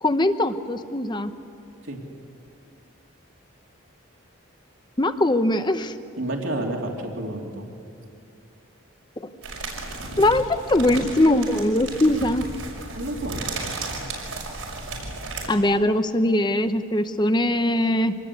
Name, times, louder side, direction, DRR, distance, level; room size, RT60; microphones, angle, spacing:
voice 1, 0.0-1.3 5.0-6.0 9.2-9.3 10.2-12.4 15.5-18.2, left 1 dB, 20° left, 10 dB, 0.8 m, -21 dB
voice 2, 6.2-7.7 12.9-13.5, right 1 dB, 70° right, 1 dB, 3.0 m, -30 dB
sound 1, 9.4-15.5, right 3 dB, 90° right, 6.1 m, -34 dB
26.0 x 20.0 x 8.3 m, 2.5 s
head